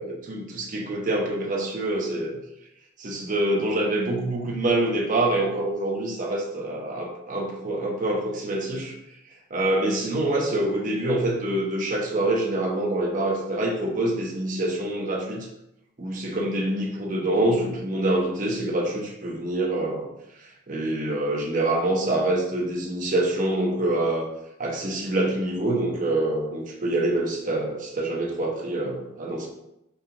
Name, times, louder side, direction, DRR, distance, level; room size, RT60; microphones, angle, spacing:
voice 1, 0.0-2.4 3.0-8.9 9.5-15.5 16.0-20.1 20.4-24.3 24.6-29.5, right 1 dB, 40° right, -1 dB, 0.7 m, -26 dB
5.3 x 2.3 x 2.8 m, 0.85 s
head